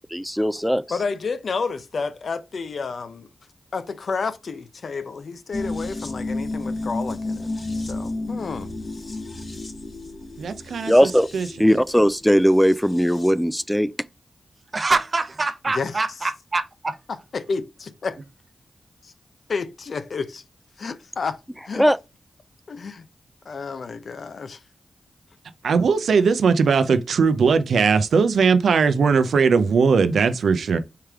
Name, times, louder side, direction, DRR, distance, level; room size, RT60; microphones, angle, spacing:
voice 1, 0.1-0.8 10.9-11.3 11.6-13.9 21.8-22.0, equal, ahead, 0.3 m, -18 dB
voice 2, 0.9-3.3 3.7-8.7 15.7-16.3 17.1-17.6 18.0-18.1 19.5-20.4 20.8-21.9 22.7-23.1 23.4-24.6, left 4 dB, 70° left, 0.6 m, -30 dB
sound 1, 5.5-13.4 13.7-13.8, left 2 dB, 45° left, 1.0 m, -32 dB
voice 3, 10.4-11.5 25.6-30.8, right 5 dB, 85° right, 0.5 m, -19 dB
voice 4, 14.7-17.0, right 3 dB, 40° right, 0.8 m, -25 dB
4.6 x 3.3 x 3.5 m
cardioid pair, 55°, 0 cm